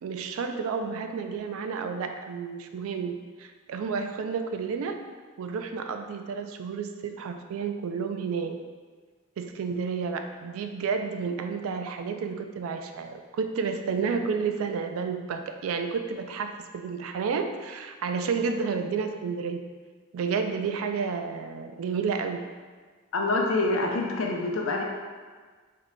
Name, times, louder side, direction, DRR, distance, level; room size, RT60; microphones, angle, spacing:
voice 1, 0.0-3.1 3.4-5.0 5.4-8.6 9.4-19.6 20.1-22.4, right 5 dB, 80° right, 6 dB, 0.3 m, -31 dB
voice 2, 23.1-24.8, left 2 dB, 70° left, 0 dB, 0.5 m, -26 dB
3.6 x 2.2 x 3.6 m, 1.5 s
head